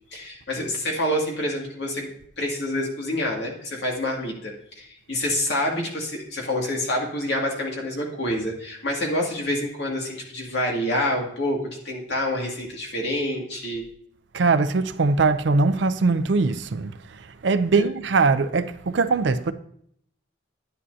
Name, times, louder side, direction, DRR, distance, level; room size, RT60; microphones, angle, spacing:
voice 1, 0.1-2.1 2.4-13.8 17.7-17.9, left 1 dB, 65° left, 2.3 m, -27 dB
voice 2, 14.3-16.9 17.4-19.5, right 4 dB, 75° right, 0.5 m, -21 dB
10.0 x 9.8 x 2.8 m
head